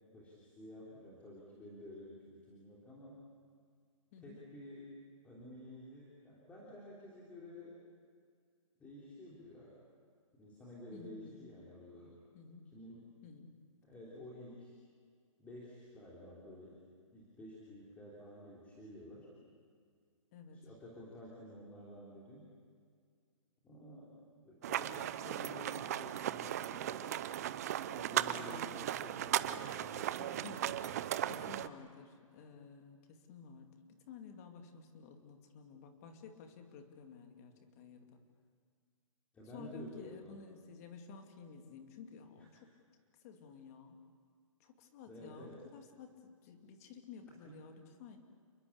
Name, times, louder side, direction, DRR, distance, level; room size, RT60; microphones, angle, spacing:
voice 1, 0.1-3.2 4.2-4.9 5.2-7.8 8.8-9.7 10.4-12.2 12.7-13.1 13.8-14.8 15.4-16.8 17.1-19.3 20.5-22.5 23.6-27.2 27.5-30.2 39.3-40.4 42.4-42.5 45.1-45.6 47.5-47.6, left 1 dB, 10° left, -6 dB, 3.4 m, -51 dB
voice 2, 10.9-11.6 12.3-12.7 13.2-13.5 20.3-20.6 30.2-38.2 39.5-42.7 43.2-44.0 44.6-48.2, left 5 dB, 25° left, 5 dB, 2.4 m, -53 dB
sound 1, 24.6-31.7, right 11 dB, 30° right, 0.7 m, -37 dB
29.5 x 21.5 x 8.7 m, 2.1 s
hypercardioid pair, 170°, 17 cm